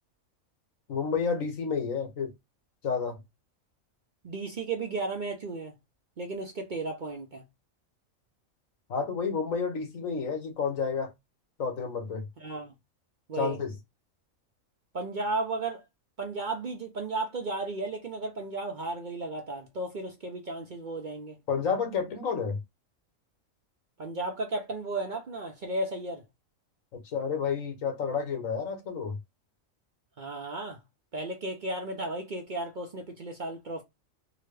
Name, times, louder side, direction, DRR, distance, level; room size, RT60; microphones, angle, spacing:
voice 1, 0.9-2.3 2.8-3.2 8.9-11.1 11.6-12.2 13.4-13.7 21.5-22.6 26.9-29.2, left 5 dB, 80° left, 1.5 m, -30 dB
voice 2, 4.2-5.7 6.2-7.4 12.4-12.7 13.3-13.6 14.9-15.8 16.2-21.4 24.0-26.2 30.2-30.8 31.1-33.8, right 2 dB, 45° right, 0.7 m, -34 dB
3.8 x 2.2 x 3.3 m
omnidirectional pair, 1.4 m